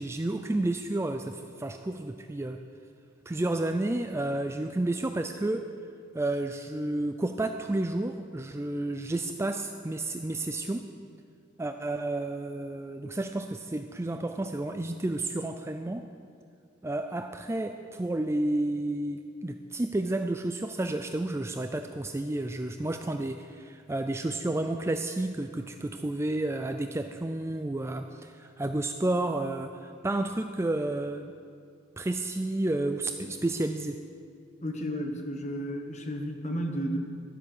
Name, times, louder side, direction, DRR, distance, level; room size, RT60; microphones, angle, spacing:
voice 1, 0.0-2.6 3.3-5.6 6.1-10.8 11.6-16.1 16.8-31.3 32.0-34.0, right 2 dB, 15° right, 7 dB, 0.3 m, -31 dB
voice 2, 34.6-37.0, equal, 35° left, 4 dB, 1.3 m, -32 dB
12.0 x 10.5 x 6.6 m, 2.4 s
head